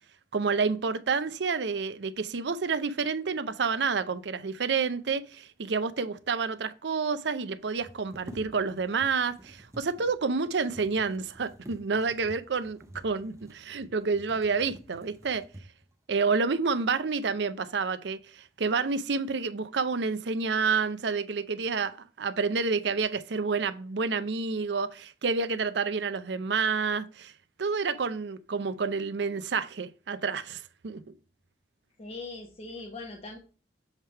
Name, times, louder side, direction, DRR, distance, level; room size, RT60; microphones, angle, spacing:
voice 1, 0.3-12.8 13.0-15.5 16.1-27.3 27.6-31.1, right 4 dB, 65° right, 0.6 m, -29 dB
sound 1, 6.1-6.2 6.4-6.5 7.6-16.0 16.6-16.8 17.2-17.8 18.2-18.7, right 1 dB, 15° right, 0.7 m, -50 dB
voice 2, 32.0-33.4, left 3 dB, 35° left, 1.0 m, -40 dB
7.3 x 3.4 x 4.4 m
head